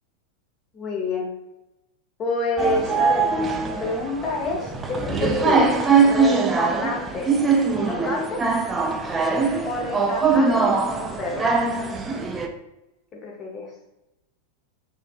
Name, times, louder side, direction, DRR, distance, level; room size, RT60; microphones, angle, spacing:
voice 1, 0.7-1.3 2.2-7.3 7.7-8.5 9.6-11.5 13.2-13.7, left 2 dB, 30° left, -1 dB, 0.8 m, -28 dB
sound 1, 2.6-12.5, right 4 dB, 15° right, 0.3 m, -22 dB
3.1 x 2.7 x 2.4 m, 0.94 s
figure-of-eight pair, 90°, 0 cm